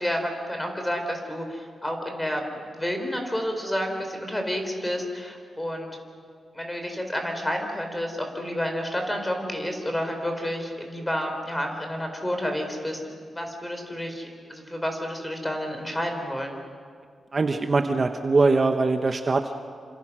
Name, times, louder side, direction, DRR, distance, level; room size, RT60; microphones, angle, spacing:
voice 1, 0.0-6.0 6.5-16.5, equal, 10° left, 4 dB, 4.5 m, -30 dB
voice 2, 17.3-19.6, right 3 dB, 35° right, 6 dB, 1.1 m, -22 dB
29.0 x 26.5 x 6.3 m, 2.1 s
wide cardioid pair, 115°, 0 cm